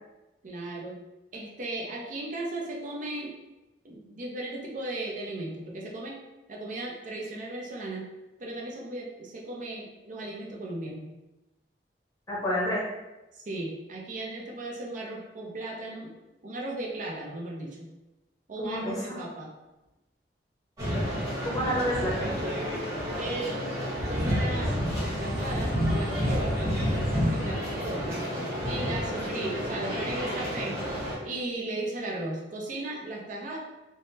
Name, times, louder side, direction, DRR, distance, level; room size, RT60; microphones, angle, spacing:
voice 1, 0.4-1.0 1.3-3.4 3.8-6.2 6.5-8.1 8.4-11.1 13.3-16.1 16.4-17.9 18.5-19.5 21.7-21.8 23.1-23.8 24.1-28.2 28.7-30.8 31.2-33.6, right 2 dB, 45° right, -2 dB, 0.5 m, -36 dB
voice 2, 12.3-12.9 18.6-19.2 21.4-22.4, equal, 20° left, -4 dB, 0.7 m, -29 dB
sound 1, 20.8-31.2, equal, 20° right, 1.4 m, -29 dB
3.4 x 2.0 x 2.6 m, 1.0 s
head